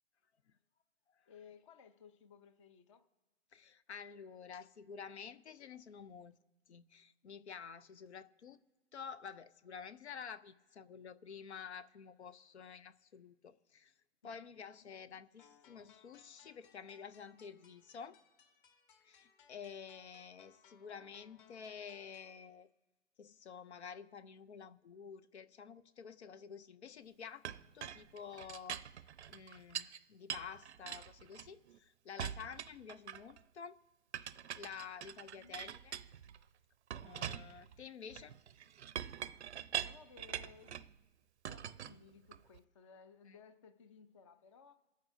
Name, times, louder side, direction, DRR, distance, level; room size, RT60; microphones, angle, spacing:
voice 1, 1.3-3.0 14.2-14.4 14.8-14.9 35.1-35.6 39.7-40.9 41.5-44.8, left 6 dB, 25° left, 0.6 m, -59 dB
voice 2, 3.5-6.3 6.7-8.6 8.9-13.9 14.2-18.2 19.0-22.7 23.2-27.4 27.7-28.8 29.3-33.8 34.6-36.0 37.0-38.4, left 6 dB, 65° left, 0.7 m, -50 dB
sound 1, 15.4-22.4, left 7 dB, 40° left, 2.2 m, -66 dB
Chink clink, 27.4-30.0 30.3-31.8 32.2-33.4 34.1-36.4 36.9-40.9 41.4-42.6, right 9 dB, 65° right, 0.6 m, -44 dB
28.0 x 9.4 x 2.7 m
hypercardioid pair, 150°, 37 cm